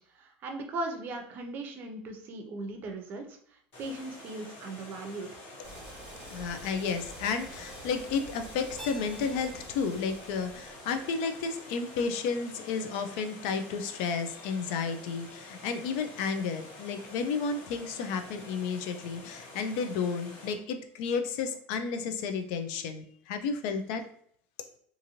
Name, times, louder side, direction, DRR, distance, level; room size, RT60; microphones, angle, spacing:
voice 1, 0.0-5.3, right 2 dB, 40° right, 4 dB, 0.5 m, -38 dB
Water, 3.7-20.5, left 1 dB, 55° left, 1.4 m, -48 dB
sound 1, 5.6-11.1, right 1 dB, 25° right, 1.1 m, -48 dB
voice 2, 6.3-24.0, left 5 dB, 75° left, 8 dB, 0.4 m, -32 dB
Keyboard (musical), 8.8-11.6, left 1 dB, 10° left, 0.8 m, -51 dB
2.6 x 2.5 x 2.8 m, 0.63 s
cardioid pair, 145°, 5 cm